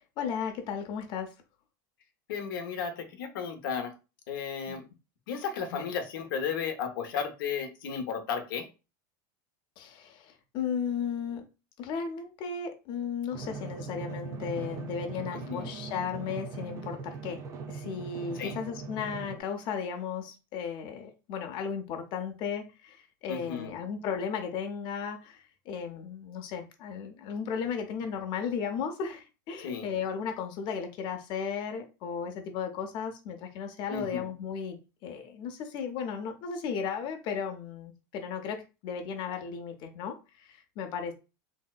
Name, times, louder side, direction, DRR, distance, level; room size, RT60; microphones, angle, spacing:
voice 1, 0.0-1.3 4.7-4.8 5.7-5.8 9.8-11.4 11.8-17.4 17.7-41.1, left 6 dB, 45° left, 5 dB, 0.6 m, -35 dB
voice 2, 2.3-3.9 4.3-4.9 5.3-8.7 15.5-15.7 18.4-18.6 23.3-23.7 29.6-29.9 33.9-34.2, left 6 dB, 90° left, 5 dB, 0.6 m, -34 dB
Drum, 13.3-19.4, right 4 dB, 30° right, 0.5 m, -40 dB
3.1 x 2.7 x 2.2 m, 0.30 s
supercardioid pair, 135°, 11 cm